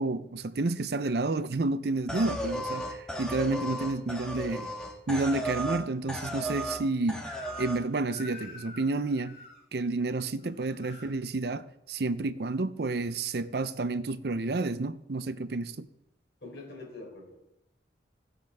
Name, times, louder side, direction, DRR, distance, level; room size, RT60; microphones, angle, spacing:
voice 1, 0.0-4.7 5.1-7.2 7.6-9.3 9.7-15.9, right 3 dB, 60° right, 0.6 m, -30 dB
sound 1, 2.1-5.8 6.1-6.8 7.1-7.8, equal, 5° left, 1.3 m, -35 dB
Crying sobbing / Screech, 7.2-7.8 8.1-9.6 10.4-11.1, left 2 dB, 40° left, 3.1 m, -47 dB
voice 2, 16.4-17.3, left 2 dB, 80° left, 4.1 m, -44 dB
16.0 x 7.9 x 3.5 m
head